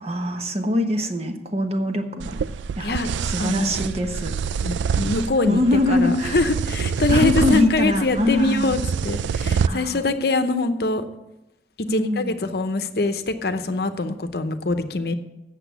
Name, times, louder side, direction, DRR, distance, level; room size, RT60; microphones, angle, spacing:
voice 1, 0.0-2.4 2.8-3.0 3.3-4.3 5.4-6.4 7.1-8.7 9.6-10.0 11.9-12.4, left 1 dB, 35° right, 5 dB, 1.0 m, -23 dB
sound 1, 2.2-9.7, right 6 dB, 80° right, 0.3 m, -26 dB
voice 2, 3.4-3.7 4.6-11.0 11.9-15.1, left 2 dB, 55° left, 9 dB, 0.8 m, -24 dB
8.2 x 7.5 x 8.1 m, 0.96 s
head